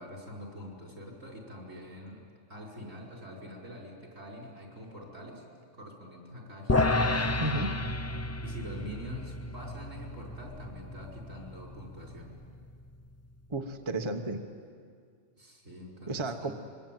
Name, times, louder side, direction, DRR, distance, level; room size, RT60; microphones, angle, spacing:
voice 1, 0.0-2.2 2.5-5.4 5.7-7.0 8.4-12.3 15.4-16.5, equal, 70° right, -1 dB, 5.4 m, -45 dB
sound 1, 6.7-13.1, left 2 dB, 20° left, 0.5 m, -32 dB
voice 2, 7.4-7.7 13.5-14.4 16.1-16.5, right 2 dB, 25° right, 4 dB, 1.1 m, -32 dB
25.0 x 22.5 x 9.3 m, 2.1 s
omnidirectional pair, 1.3 m